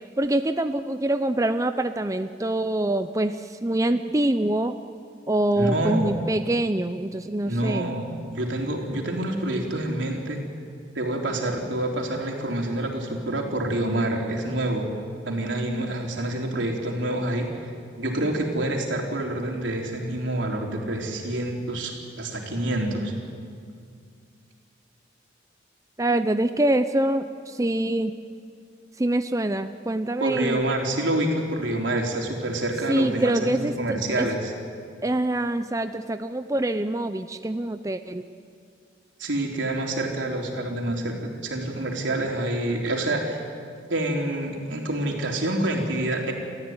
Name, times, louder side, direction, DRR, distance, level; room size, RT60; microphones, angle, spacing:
voice 1, 0.2-4.8 5.3-7.9 26.0-28.1 29.0-30.6 32.9-34.3 35.0-38.2, right 1 dB, 15° right, 9 dB, 0.6 m, -25 dB
voice 2, 5.6-6.1 7.4-10.4 10.9-14.9 15.2-17.5 18.0-23.1 30.2-34.5 39.2-41.2 41.4-43.4 43.9-46.3, right 1 dB, 85° right, 1 dB, 3.8 m, -27 dB
29.5 x 14.0 x 9.6 m, 2.3 s
head